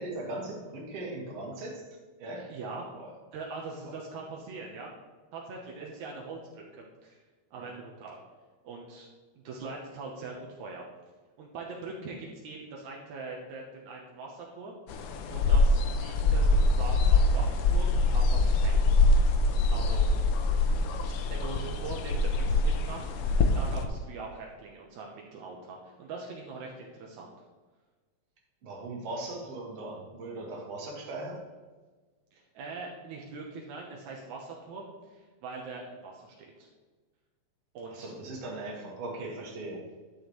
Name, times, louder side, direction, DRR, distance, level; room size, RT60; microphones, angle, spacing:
voice 1, 0.0-1.9 2.2-2.6 2.9-3.1 7.5-7.7 28.6-31.5 37.9-39.8, right 2 dB, 60° right, -2 dB, 2.7 m, -39 dB
voice 2, 2.5-2.9 3.3-4.9 5.3-7.2 7.5-8.2 8.6-9.1 9.4-10.8 11.4-14.8 15.3-19.1 19.7-20.1 21.2-23.3 23.5-27.3 32.3-36.5 37.7-38.1, right 3 dB, 80° right, -1 dB, 2.4 m, -42 dB
sound 1, 14.9-23.9, left 2 dB, 85° left, 1.2 m, -24 dB
11.5 x 7.2 x 3.2 m, 1.3 s
omnidirectional pair, 3.3 m